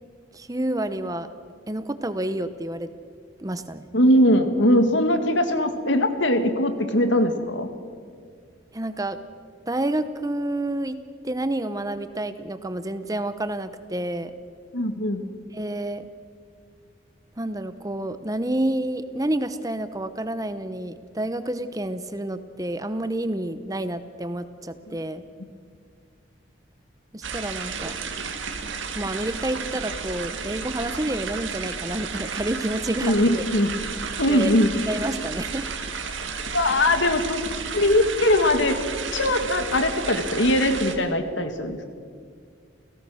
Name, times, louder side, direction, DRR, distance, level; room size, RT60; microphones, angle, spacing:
voice 1, 0.3-1.3 1.7-2.9 3.4-3.9 8.7-9.2 9.7-11.0 11.2-14.3 15.5-16.1 17.4-25.2 27.1-28.0 28.9-33.4 34.3-34.5 34.9-35.7, right 1 dB, 15° right, 11 dB, 0.8 m, -29 dB
voice 2, 3.9-7.7 14.7-15.3 24.9-25.0 33.0-33.7 34.2-34.7 36.5-37.4 37.7-38.8 39.1-41.8, left 1 dB, 70° left, 7 dB, 2.0 m, -21 dB
sound 1, 27.2-41.0, right 5 dB, 75° right, 2.1 m, -32 dB
29.5 x 17.0 x 6.4 m, 2.1 s
head